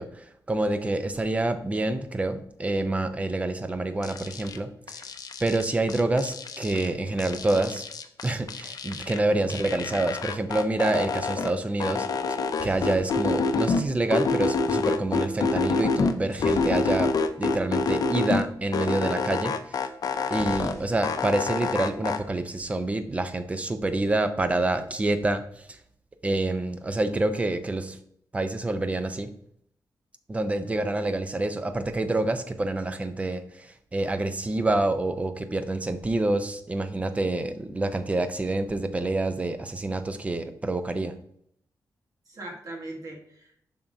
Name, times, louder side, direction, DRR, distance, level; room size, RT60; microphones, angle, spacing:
voice 1, 0.0-5.0 5.4-7.9 8.2-12.1 12.6-17.1 17.4-19.8 20.3-25.4 25.7-25.8 26.2-28.0 28.3-29.3 30.3-41.1, right 2 dB, 20° right, 9 dB, 0.6 m, -27 dB
sound 1, 4.0-4.6 4.9-6.9 7.2-9.2 9.5-11.5 11.8-13.8 14.1-16.1 16.4-18.4 18.7-20.7 21.0-22.2, left 4 dB, 60° left, 0.6 m, -27 dB
sound 2, 12.5-14.3 16.3-17.4 17.7-17.9 18.1-18.4 20.3-21.4 21.7-22.4, left 2 dB, 40° left, 1.4 m, -44 dB
voice 2, 42.3-43.5, right 2 dB, 55° right, 1 dB, 1.3 m, -41 dB
7.1 x 5.8 x 2.7 m, 0.68 s
wide cardioid pair, 165°, 7 cm